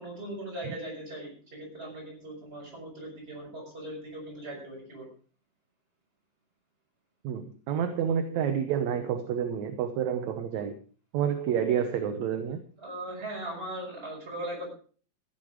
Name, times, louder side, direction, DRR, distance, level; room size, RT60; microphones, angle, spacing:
voice 1, 0.0-5.1 12.8-14.7, right 1 dB, 15° right, -2 dB, 6.2 m, -39 dB
voice 2, 7.2-10.8 11.1-12.6, right 8 dB, 65° right, 8 dB, 2.0 m, -29 dB
14.5 x 9.7 x 5.0 m, 0.41 s
omnidirectional pair, 3.9 m